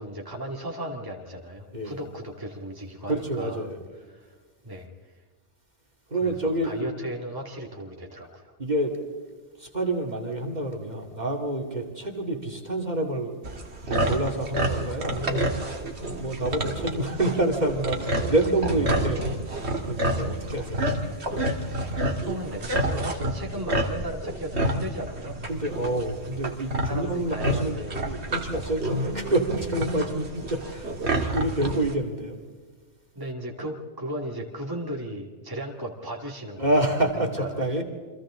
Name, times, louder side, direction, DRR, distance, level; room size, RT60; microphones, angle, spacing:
voice 1, 0.0-3.7 4.1-4.3 4.6-5.2 6.1-8.5 16.4-16.5 21.7-25.4 26.8-28.0 33.2-36.7 37.2-37.8, right 1 dB, 20° right, 0 dB, 2.3 m, -36 dB
voice 2, 3.1-3.8 6.1-6.9 8.6-9.0 9.6-13.4 13.9-15.4 16.2-19.4 19.9-20.9 25.5-27.8 28.0-30.9 31.3-32.4 36.6-37.8, right 1 dB, 40° right, 1 dB, 2.6 m, -27 dB
sound 1, 13.4-31.9, right 1 dB, 70° right, 2.3 m, -29 dB
29.5 x 25.0 x 3.8 m, 1.5 s
omnidirectional pair, 1.2 m